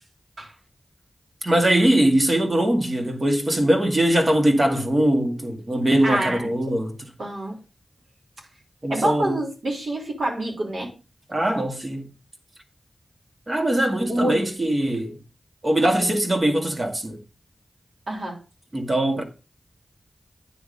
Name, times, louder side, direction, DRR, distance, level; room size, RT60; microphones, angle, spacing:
voice 1, 1.4-6.9 8.8-9.4 11.3-12.1 13.5-15.2 15.6-17.2 18.7-19.2, right 1 dB, 40° right, 2.0 m, -21 dB
voice 2, 6.0-6.5 7.2-7.5 8.9-10.9 14.1-14.4 18.1-18.4, right 1 dB, 70° right, 3.2 m, -26 dB
9.4 x 3.6 x 6.7 m
cardioid pair, 55°, 0 cm